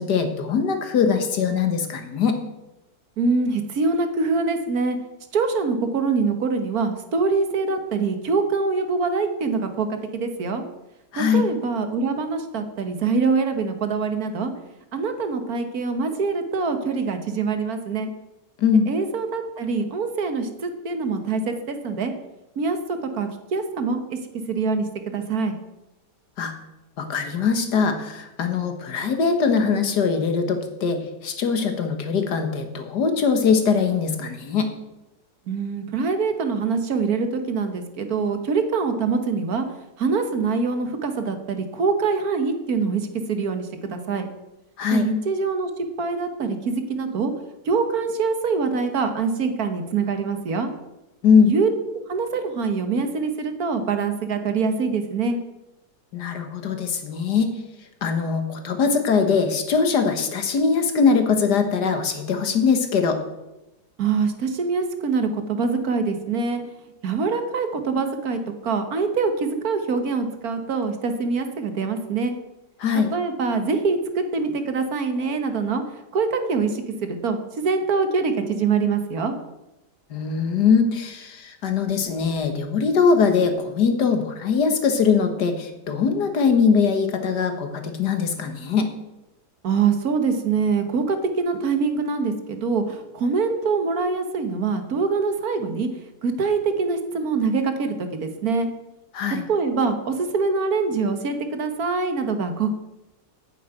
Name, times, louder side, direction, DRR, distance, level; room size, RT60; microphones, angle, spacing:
voice 1, 0.0-2.4 11.1-11.5 18.6-18.9 26.4-26.5 27.0-34.7 44.8-45.1 51.2-51.5 56.1-57.5 58.0-63.2 72.8-73.1 80.1-88.9 99.1-99.5, left 5 dB, 90° left, 6 dB, 2.0 m, -21 dB
voice 2, 3.2-5.0 5.3-9.9 10.1-10.6 11.1-14.5 14.9-18.1 18.9-22.1 22.6-24.2 24.5-25.5 35.5-39.7 40.0-43.0 43.3-44.3 44.9-47.3 47.7-50.7 51.4-51.7 52.1-55.4 64.0-66.6 67.0-72.3 72.9-75.8 76.1-79.3 89.6-95.9 96.2-98.7 99.5-102.7, right 4 dB, 65° right, 8 dB, 1.7 m, -24 dB
9.3 x 7.4 x 9.0 m, 0.96 s
omnidirectional pair, 1.7 m